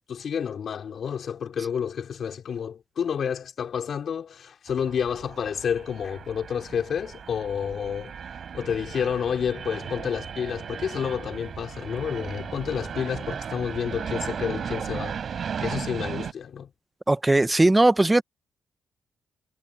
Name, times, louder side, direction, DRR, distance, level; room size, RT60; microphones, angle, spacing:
voice 1, 0.1-8.1 8.5-15.2 15.6-16.7, left 7 dB, 55° left, 3.9 m, -30 dB
sound 1, 4.7-16.3, right 7 dB, 50° right, 6.9 m, -36 dB
voice 2, 17.1-18.2, right 2 dB, 15° right, 0.6 m, -19 dB
cardioid pair, 90°, 0 cm